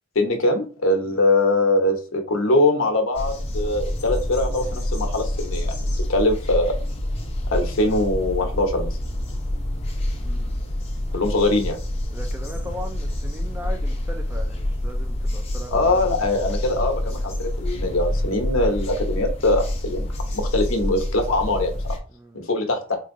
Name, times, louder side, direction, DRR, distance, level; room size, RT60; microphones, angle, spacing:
voice 1, 0.1-6.7 7.5-8.9 11.1-11.8 15.7-22.0 22.3-23.0, left 2 dB, 70° left, 4 dB, 0.8 m, -22 dB
sound 1, 3.1-22.0, left 1 dB, 30° left, 0.7 m, -27 dB
voice 2, 10.2-10.6 12.1-16.1 18.2-18.5 22.1-22.4, left 1 dB, 10° right, 3 dB, 0.3 m, -38 dB
4.1 x 2.6 x 2.5 m, 0.37 s
head